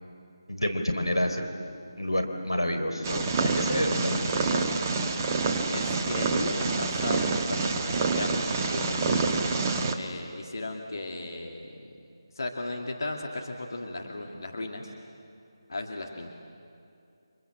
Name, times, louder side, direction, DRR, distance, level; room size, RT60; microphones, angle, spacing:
voice 1, 0.5-1.5 2.0-4.7, equal, 90° left, 5 dB, 3.7 m, -29 dB
Purr, 3.0-9.9, right 4 dB, 20° right, 1.2 m, -27 dB
voice 2, 5.7-9.4 10.0-11.7 12.3-14.9 15.7-16.3, left 2 dB, 55° left, 1 dB, 2.4 m, -35 dB
29.5 x 25.5 x 7.6 m, 2.5 s
figure-of-eight pair, 155°, 2 cm